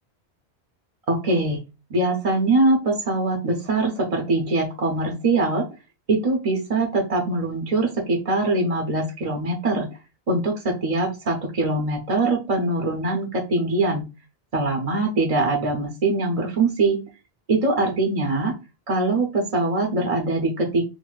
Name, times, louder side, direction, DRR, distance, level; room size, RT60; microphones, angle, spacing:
voice 1, 1.1-1.6 1.9-5.6 6.1-9.9 10.3-14.0 14.5-17.0 17.5-18.5 18.9-20.8, right 2 dB, 40° right, 0 dB, 0.6 m, -22 dB
3.9 x 2.1 x 2.3 m, 0.28 s
omnidirectional pair, 1.1 m